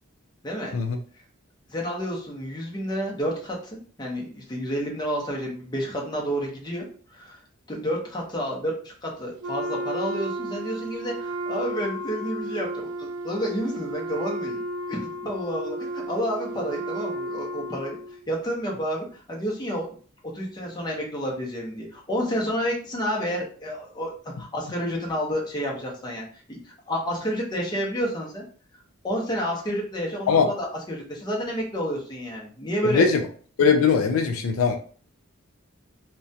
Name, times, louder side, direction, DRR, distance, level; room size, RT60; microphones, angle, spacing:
voice 1, 0.4-0.7 1.7-6.8 7.1-7.4 7.7-14.6 14.9-18.0 18.3-19.9 20.2-26.6 26.9-28.4 29.0-33.1, equal, 20° left, -2 dB, 0.7 m, -30 dB
Wind instrument woodwind instrument, 9.4-18.2, right 1 dB, 80° right, 0.3 m, -33 dB
voice 2, 32.9-33.2 33.6-34.8, left 5 dB, 80° left, 6 dB, 0.4 m, -20 dB
2.4 x 2.2 x 2.6 m, 0.42 s
head